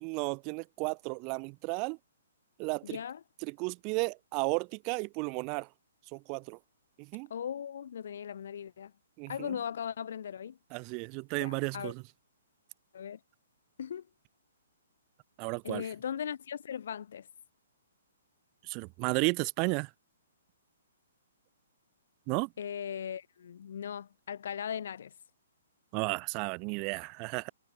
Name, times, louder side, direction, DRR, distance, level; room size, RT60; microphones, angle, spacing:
voice 1, 0.0-2.0 2.6-3.0 3.4-5.7 6.1-6.6 7.0-7.3 9.2-9.5 10.7-12.0 15.4-15.8 18.7-19.9 22.3-22.5 25.9-27.5, right 34 dB, 35° right, 0.7 m, -33 dB
voice 2, 2.8-3.2 7.3-8.9 9.3-10.6 11.4-11.9 12.9-13.2 13.8-14.0 15.6-17.3 22.6-25.1, left 8 dB, 65° left, 2.9 m, -38 dB
hypercardioid pair, 130°, 0 cm